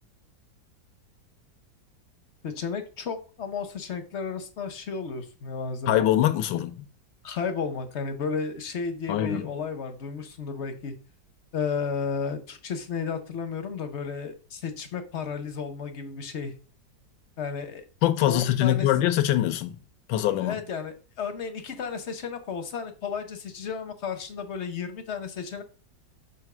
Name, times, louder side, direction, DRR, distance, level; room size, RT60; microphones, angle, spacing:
voice 1, 2.4-6.0 7.2-11.0 11.5-16.5 17.4-17.8 18.3-18.9 20.4-25.6, left 5 dB, 50° left, 0.9 m, -33 dB
voice 2, 5.9-6.7 9.1-9.4 18.0-19.8 20.1-20.6, left 13 dB, 80° left, 1.4 m, -23 dB
4.9 x 4.5 x 6.0 m
omnidirectional pair, 2.0 m